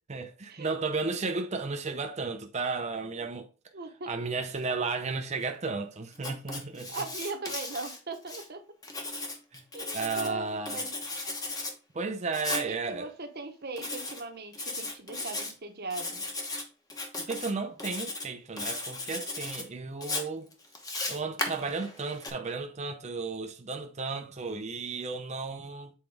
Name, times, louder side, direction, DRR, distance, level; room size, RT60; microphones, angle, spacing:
voice 1, 0.1-3.5 4.1-7.1 9.5-9.6 9.9-10.8 11.9-13.1 17.2-20.5 21.1-25.9, right 4 dB, 30° right, 0.6 m, -34 dB
voice 2, 3.7-4.1 6.9-8.6 9.7-10.9 12.7-16.3, right 3 dB, 50° right, 1.1 m, -39 dB
Writing, 6.1-8.4 8.8-10.3 10.6-11.7 12.3-12.7 13.8-14.2 14.5-15.5 15.9-16.6 16.9-17.5 17.8-18.3 18.6-19.6 20.0-22.3, left 2 dB, 15° left, 1.0 m, -36 dB
7.1 x 4.5 x 3.4 m
head